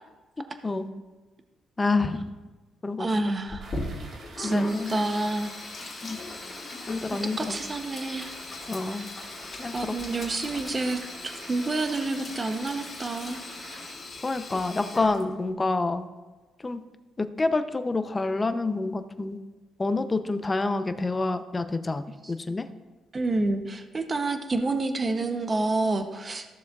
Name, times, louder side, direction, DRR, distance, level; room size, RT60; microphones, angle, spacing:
voice 1, 1.8-2.2 2.8-3.1 4.4-5.0 6.0-6.2 6.9-7.6 8.7-9.1 9.6-10.2 14.2-16.1 16.6-16.8 17.2-19.4 19.8-22.6, left 3 dB, 25° left, 10 dB, 0.6 m, -28 dB
voice 2, 3.0-3.7 4.4-5.5 7.4-8.3 8.8-9.2 9.7-13.4 22.2-22.3 23.1-26.4, right 2 dB, 30° right, 7 dB, 0.7 m, -28 dB
Sink (filling or washing), 3.5-15.5, left 2 dB, 40° left, 2.1 m, -40 dB
sound 1, 3.6-13.9, right 2 dB, 55° right, 1.6 m, -46 dB
14.5 x 6.9 x 2.4 m, 1.2 s
cardioid pair, 90°, 0 cm